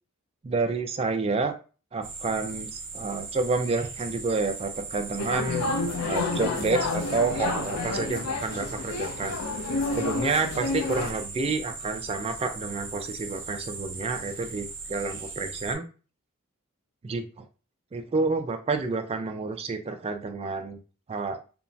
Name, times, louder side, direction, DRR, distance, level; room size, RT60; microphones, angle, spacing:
voice 1, 0.4-1.5 1.9-5.6 6.0-9.4 10.0-15.9 17.0-17.4 17.9-20.8 21.1-21.4, right 4 dB, 25° right, 6 dB, 0.3 m, -29 dB
sound 1, 2.0-15.7, right 4 dB, 60° right, 0.7 m, -39 dB
sound 2, 5.2-11.1, left 3 dB, 85° left, 0.4 m, -30 dB
2.9 x 2.1 x 2.6 m, 0.35 s
head